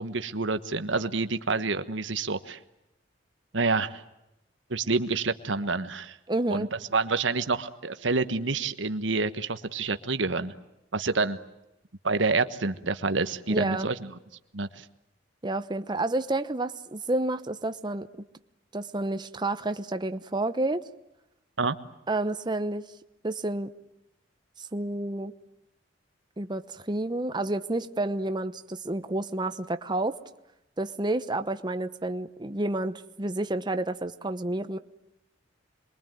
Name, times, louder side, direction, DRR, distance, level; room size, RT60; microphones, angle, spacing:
voice 1, 0.0-2.6 3.5-4.0 4.7-6.2 6.5-6.7 6.9-10.5 10.9-11.4 12.0-14.1 14.5-14.8 21.6-21.8, right 3 dB, 85° right, 10 dB, 1.3 m, -28 dB
voice 2, 6.3-6.7 13.5-13.9 15.4-18.1 18.7-20.8 22.1-22.8 23.2-23.7 24.6-25.3 26.4-30.2 30.8-34.8, right 2 dB, 25° right, 10 dB, 1.0 m, -30 dB
27.5 x 22.5 x 9.2 m, 0.91 s
head